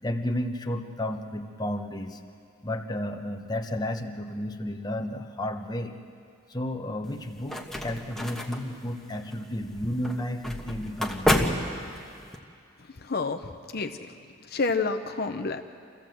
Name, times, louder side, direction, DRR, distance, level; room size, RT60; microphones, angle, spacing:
voice 1, 0.0-2.2 2.6-6.0 6.5-11.6, left 1 dB, 20° left, 4 dB, 1.0 m, -32 dB
sound 1, 7.0-12.4, left 1 dB, ahead, 1.3 m, -30 dB
voice 2, 13.0-14.2 14.5-15.6, left 4 dB, 50° left, 6 dB, 0.8 m, -29 dB
26.0 x 15.0 x 7.8 m, 2.3 s
head